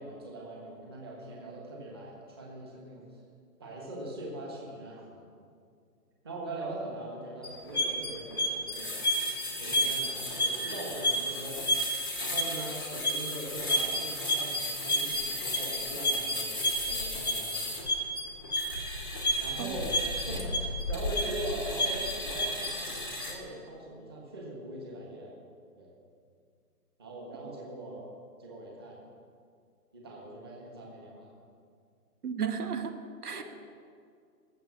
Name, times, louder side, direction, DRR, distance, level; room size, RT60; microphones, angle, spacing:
voice 1, 0.0-3.1 3.6-5.2 6.2-8.9 9.6-11.6 12.2-17.8 19.4-25.4 25.8-25.9 27.0-28.1 28.4-29.0 29.9-31.3 33.3-33.4, right 1 dB, 15° right, -3 dB, 1.4 m, -41 dB
sound 1, 7.4-23.3, equal, 15° left, 0.8 m, -31 dB
voice 2, 32.2-32.9 33.2-33.4, right 7 dB, 75° right, 6 dB, 1.7 m, -33 dB
19.0 x 7.1 x 7.4 m, 2.2 s
hypercardioid pair, 180°, 46 cm